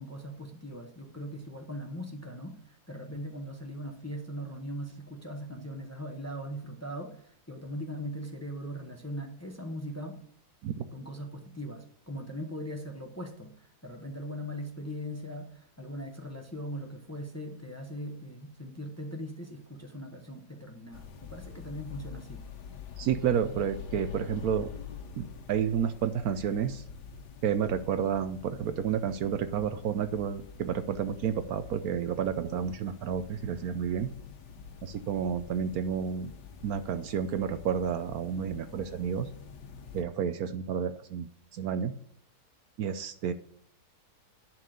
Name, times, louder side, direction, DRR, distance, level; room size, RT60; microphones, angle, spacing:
voice 1, 0.0-10.2 10.9-22.4, equal, 10° left, 3 dB, 1.0 m, -40 dB
sound 1, 20.9-40.0, left 7 dB, 90° left, 1.5 m, -46 dB
voice 2, 23.0-24.7 25.2-26.8 27.4-34.1 34.8-36.3 36.6-39.3 39.9-41.3 41.5-41.9 42.8-43.3, right 8 dB, 70° right, 10 dB, 1.1 m, -30 dB
11.0 x 4.6 x 6.6 m, 0.64 s
omnidirectional pair, 1.7 m